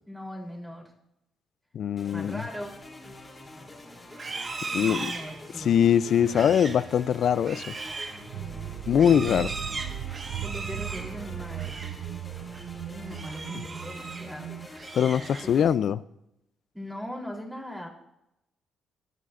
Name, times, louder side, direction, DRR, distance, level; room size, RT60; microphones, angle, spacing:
voice 1, 0.1-0.9 2.1-2.8 4.8-5.8 6.3-6.6 8.3-9.4 10.4-11.9 12.7-14.6 15.4-15.7 16.7-17.9, equal, 5° right, 3.4 m, -40 dB
voice 2, 1.7-2.4 4.7-5.1 5.6-7.7 8.9-9.5 14.9-16.0, left 8 dB, 60° left, 0.4 m, -22 dB
sound 1, 2.0-15.7, left 2 dB, 20° left, 3.1 m, -46 dB
Livestock farm animals working animals, 4.1-12.0 12.4-12.7 13.1-14.3 14.7-15.7, right 3 dB, 35° right, 1.4 m, -38 dB
sound 2, 6.2-14.7, right 13 dB, 80° right, 0.4 m, -38 dB
18.5 x 11.0 x 2.5 m
cardioid pair, 90°, 0 cm